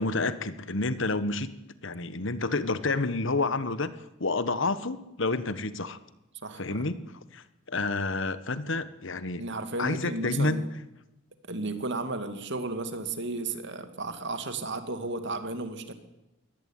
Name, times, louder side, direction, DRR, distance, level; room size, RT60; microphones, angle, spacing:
voice 1, 0.0-1.5 1.8-3.9 4.2-6.0 6.6-7.0 7.3-9.5 9.8-10.7, left 3 dB, 60° left, 14 dB, 1.4 m, -29 dB
voice 2, 6.4-6.9 9.4-10.6 11.4-15.9, right 2 dB, 55° right, 9 dB, 2.7 m, -34 dB
22.5 x 18.5 x 9.2 m, 0.94 s
head